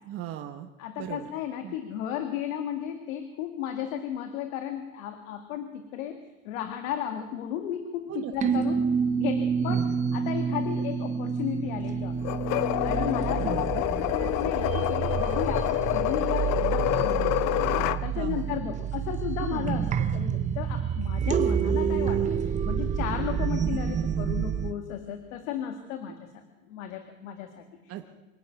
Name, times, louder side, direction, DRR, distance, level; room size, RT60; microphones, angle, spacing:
voice 1, 0.1-0.7 1.0-1.3 1.6-1.8 8.1-8.3 9.6-10.0 10.4-10.6 13.4-13.8 18.1-18.6 19.4-19.8 26.1-26.2 27.9-28.1, right 11 dB, 35° right, 5 dB, 1.1 m, -38 dB
voice 2, 0.8-8.8 9.2-9.8 10.1-12.4 12.8-17.4 17.7-27.9, left 9 dB, 70° left, 6 dB, 2.1 m, -34 dB
sound 1, 8.4-24.7, right 7 dB, 20° right, 0.7 m, -28 dB
sound 2, 12.2-18.0, left 16 dB, 40° left, 0.8 m, -27 dB
25.0 x 11.0 x 9.4 m, 1.2 s
supercardioid pair, 150°, 41 cm